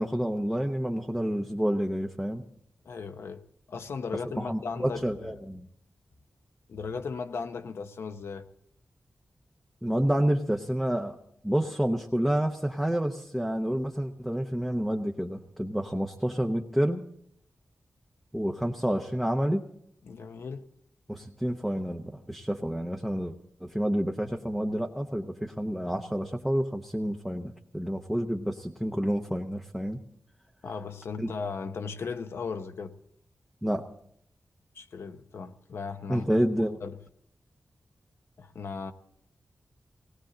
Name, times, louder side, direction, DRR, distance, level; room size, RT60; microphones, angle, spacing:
voice 1, 0.0-2.4 4.3-5.7 9.8-11.2 11.4-17.0 18.3-19.6 21.1-23.3 23.6-30.0 31.2-31.3 33.6-33.8 36.1-36.8, equal, 5° right, 0.7 m, -29 dB
voice 2, 2.8-3.4 3.7-5.4 6.7-8.5 20.1-20.7 30.6-32.9 34.7-36.3 36.6-37.0 38.4-38.9, left 5 dB, 75° left, 0.8 m, -37 dB
19.0 x 18.0 x 3.8 m
wide cardioid pair, 160°, 4 cm